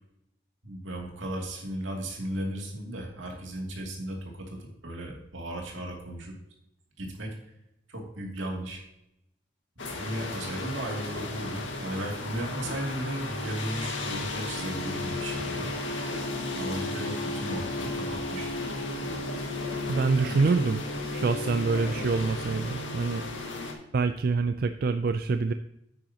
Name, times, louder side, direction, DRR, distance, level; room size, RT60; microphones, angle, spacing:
voice 1, 0.6-6.3 7.0-7.5 7.9-8.8 9.8-15.7 16.5-18.5 20.2-20.6, right 1 dB, 80° right, 0 dB, 2.6 m, -36 dB
sound 1, 9.8-23.7, left 2 dB, 75° left, 1.9 m, -34 dB
voice 2, 19.9-20.8 21.1-23.2 23.9-25.5, right 4 dB, 50° right, 9 dB, 0.4 m, -26 dB
9.7 x 9.1 x 2.9 m, 0.82 s
head